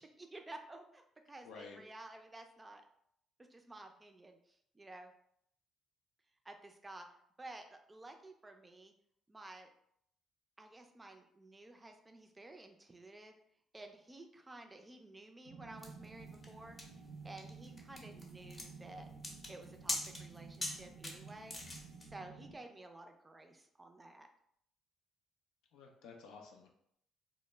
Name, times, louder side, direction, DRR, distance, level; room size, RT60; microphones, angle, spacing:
voice 1, 0.0-2.8 3.5-5.1 6.4-7.1 7.4-8.9 9.3-9.7 10.6-13.3 13.7-19.1 19.5-21.6 22.0-24.3, right 2 dB, 20° right, 5 dB, 0.4 m, -53 dB
voice 2, 1.4-1.8 25.7-26.7, left 5 dB, 80° left, 1 dB, 0.4 m, -52 dB
sound 1, 15.4-22.6, right 4 dB, 80° right, 0.4 m, -53 dB
sound 2, 15.8-22.1, left 1 dB, 30° left, 0.7 m, -43 dB
2.1 x 2.0 x 3.2 m, 0.70 s
supercardioid pair, 65°, 0 cm